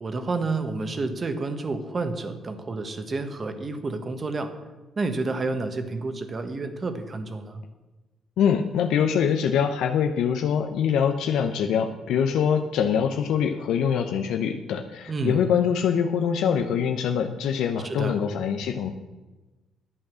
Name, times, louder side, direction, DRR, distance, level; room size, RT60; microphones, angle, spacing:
voice 1, 0.0-4.5 5.0-7.6 15.1-15.4 17.8-18.2, right 3 dB, 30° right, 8 dB, 1.3 m, -30 dB
voice 2, 8.4-18.9, left 7 dB, 85° left, 5 dB, 0.7 m, -24 dB
11.0 x 8.9 x 6.3 m, 1.2 s
cardioid pair, 110°, 0 cm